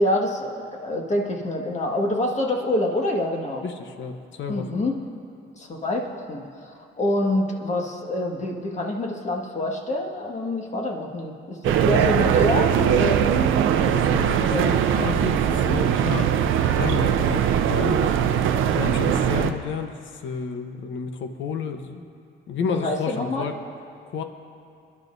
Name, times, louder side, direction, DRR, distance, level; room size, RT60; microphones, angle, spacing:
voice 1, 0.0-3.6 4.5-5.0 5.6-13.4 14.3-14.8 22.6-23.5, left 1 dB, 35° left, 0 dB, 1.8 m, -26 dB
voice 2, 3.6-4.8 13.8-16.3 16.8-18.3 18.7-22.1 22.5-23.5 24.1-24.2, left 6 dB, 75° left, 6 dB, 1.1 m, -31 dB
sound 1, 11.6-19.5, right 9 dB, 80° right, 0.6 m, -21 dB
25.5 x 11.0 x 2.7 m, 2.4 s
cardioid pair, 90°, 20 cm